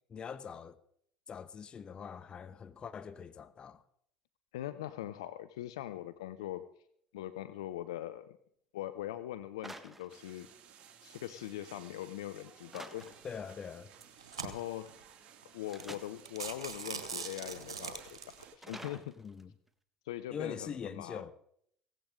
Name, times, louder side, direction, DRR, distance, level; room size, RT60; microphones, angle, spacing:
voice 1, 0.1-0.8 1.3-3.8 13.2-13.9 19.2-19.5 20.3-21.3, left 6 dB, 35° left, 1.2 m, -43 dB
voice 2, 4.5-6.7 7.1-8.4 8.7-10.5 11.0-13.1 14.4-15.0 15.5-19.2 20.1-21.3, left 13 dB, 75° left, 0.7 m, -42 dB
sound 1, 9.6-10.8 12.7-13.4 15.7-16.3 18.6-19.7, right 1 dB, 10° right, 1.5 m, -49 dB
sound 2, 10.1-18.6, right 8 dB, 50° right, 2.4 m, -58 dB
sound 3, 13.0-13.3 13.9-14.9 15.4-15.5 15.8-15.9 16.2-18.4, right 6 dB, 85° right, 1.6 m, -42 dB
17.0 x 15.5 x 3.8 m
figure-of-eight pair, 65°, 3 cm